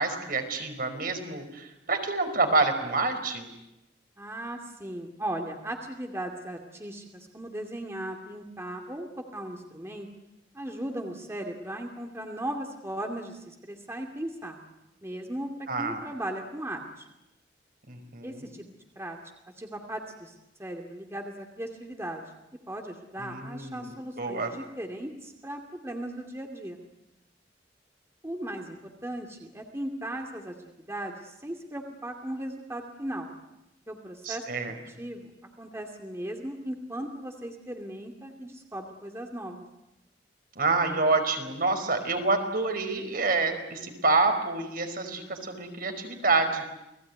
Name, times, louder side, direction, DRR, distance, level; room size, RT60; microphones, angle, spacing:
voice 1, 0.0-3.5 15.7-16.0 17.9-18.5 23.2-24.5 34.2-34.7 40.5-46.6, right 3 dB, 55° right, 6 dB, 5.0 m, -27 dB
voice 2, 4.2-10.1 10.5-14.6 15.0-17.1 18.2-18.6 19.0-19.2 19.6-20.3 20.6-22.2 22.7-26.8 28.2-28.8 29.0-33.3 33.9-35.3 35.6-39.7, right 1 dB, 15° right, 3 dB, 2.5 m, -37 dB
29.5 x 20.0 x 9.5 m, 0.91 s
head